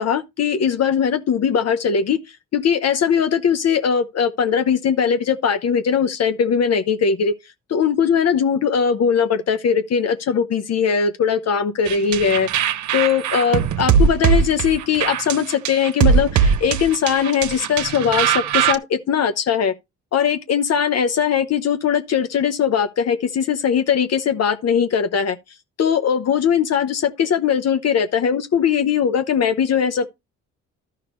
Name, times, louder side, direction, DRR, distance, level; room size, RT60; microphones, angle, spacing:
voice 1, 0.0-2.2 2.5-7.3 7.7-12.5 12.9-19.7 20.1-25.4 25.8-30.1, left 7 dB, 55° left, 0.9 m, -20 dB
sound 1, 11.9-18.8, right 7 dB, 70° right, 0.9 m, -20 dB
12.0 x 5.7 x 3.1 m
cardioid pair, 90°, 30 cm